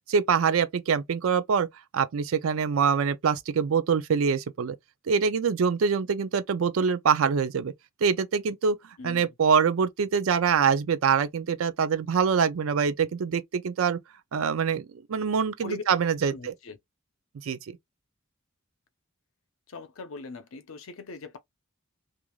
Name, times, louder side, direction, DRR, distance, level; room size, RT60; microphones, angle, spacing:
voice 1, 0.1-1.7 1.9-4.7 5.1-7.7 8.0-8.8 9.0-14.0 14.3-16.5 17.4-17.8, right 6 dB, 85° right, 0.4 m, -24 dB
voice 2, 9.0-9.3 15.6-15.8 16.2-16.8 19.7-21.4, left 3 dB, 85° left, 0.6 m, -41 dB
3.1 x 2.4 x 2.3 m
head